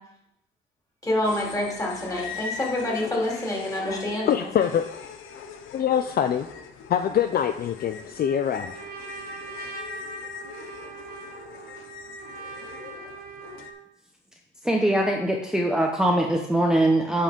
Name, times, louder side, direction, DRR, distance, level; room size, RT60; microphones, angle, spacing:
voice 1, 1.0-4.3, left 1 dB, 15° left, -4 dB, 3.4 m, -27 dB
sound 1, 1.2-13.7, left 6 dB, 85° left, 0.9 m, -40 dB
voice 2, 4.3-4.8 5.7-6.5 6.9-8.7, left 9 dB, 50° left, 9 dB, 0.5 m, -24 dB
Trumpet, 8.2-13.8, right 5 dB, 50° right, 1.8 m, -41 dB
voice 3, 14.6-17.2, right 1 dB, 5° right, 1 dB, 0.9 m, -22 dB
8.6 x 5.4 x 5.2 m, 0.79 s
cardioid pair, 90°, 20 cm